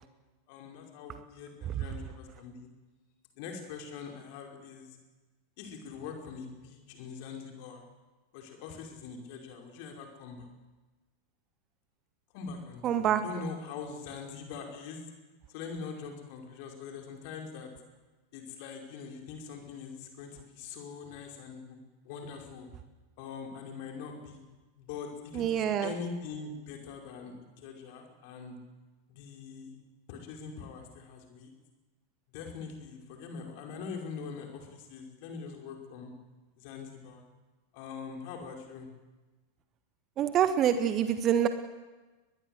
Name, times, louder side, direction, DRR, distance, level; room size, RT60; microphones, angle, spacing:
voice 1, 0.5-2.7 3.4-5.0 5.6-7.8 8.3-10.5 12.3-15.0 15.5-17.7 18.3-22.7 23.2-24.4 24.8-28.6 29.1-29.7 30.1-31.5 32.3-36.1 36.6-37.2 37.7-38.9, left 5 dB, 45° left, 3 dB, 5.4 m, -43 dB
voice 2, 12.8-13.2 25.3-25.9 40.2-41.5, right 9 dB, 30° right, 10 dB, 1.4 m, -26 dB
22.5 x 21.0 x 8.1 m, 1.2 s
figure-of-eight pair, 90°, 0 cm